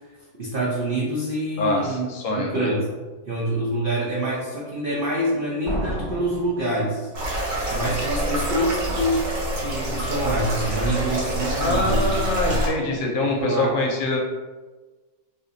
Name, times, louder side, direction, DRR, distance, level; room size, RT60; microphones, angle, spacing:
voice 1, 0.4-2.1 2.4-2.9 3.3-7.1 7.7-9.2 9.6-12.6 13.3-13.7, right 1 dB, 75° right, -4 dB, 0.5 m, -26 dB
voice 2, 1.6-2.7 11.6-14.2, left 2 dB, 70° left, -1 dB, 0.9 m, -24 dB
sound 1, 5.7-7.5, equal, 20° right, 1.1 m, -32 dB
sound 2, 7.1-12.7, equal, 50° right, 1.0 m, -26 dB
2.5 x 2.5 x 3.8 m, 1.3 s
omnidirectional pair, 1.6 m